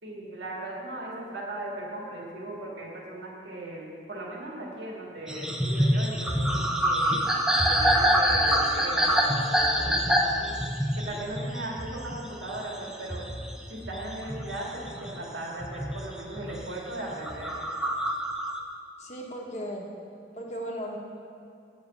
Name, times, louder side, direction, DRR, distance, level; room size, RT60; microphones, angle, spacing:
voice 1, 0.0-7.2 7.6-10.5 11.1-13.3 13.7-17.5, right 1 dB, 85° right, -3 dB, 2.3 m, -37 dB
sound 1, 5.3-15.2 15.6-16.6 17.1-18.6, equal, 5° right, 0.6 m, -26 dB
voice 2, 19.0-19.9 20.3-21.0, equal, 40° left, -1 dB, 1.2 m, -36 dB
9.0 x 6.4 x 7.1 m, 2.5 s
head